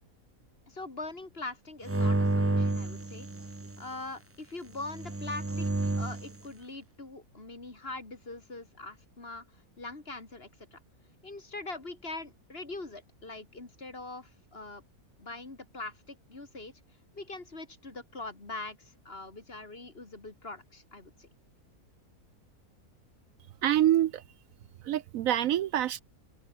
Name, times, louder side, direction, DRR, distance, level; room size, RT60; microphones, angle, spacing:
voice 1, 0.7-3.3 3.8-5.7 5.9-10.8 11.2-14.8 15.2-16.7 17.1-21.3, left 2 dB, 40° left, 3.2 m, -42 dB
sound 1, 1.9-3.8 4.8-6.3, right 2 dB, 15° right, 0.5 m, -30 dB
voice 2, 23.6-24.2 24.9-26.0, right 12 dB, 70° right, 1.0 m, -26 dB
open air
omnidirectional pair, 1.6 m